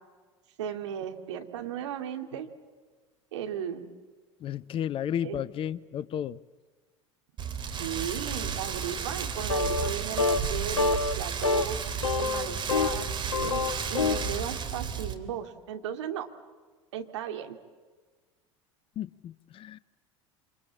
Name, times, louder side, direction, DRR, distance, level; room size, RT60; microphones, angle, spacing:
voice 1, 0.6-2.5 3.3-3.9 5.2-5.4 7.6-10.9 11.1-11.8 12.2-13.1 13.4-16.3 16.9-17.6, right 9 dB, 65° right, 5 dB, 2.5 m, -36 dB
voice 2, 4.4-6.4 19.0-19.8, left 10 dB, 35° left, 20 dB, 0.7 m, -33 dB
Rain, 7.4-15.1, right 7 dB, 30° right, 2.7 m, -33 dB
sound 1, 9.5-9.9 10.2-10.5 10.8-11.1 11.4-11.7 12.0-13.0 13.3-14.3, left 4 dB, 80° left, 1.1 m, -26 dB
28.0 x 26.5 x 7.5 m, 1.4 s
figure-of-eight pair, 75°, 16 cm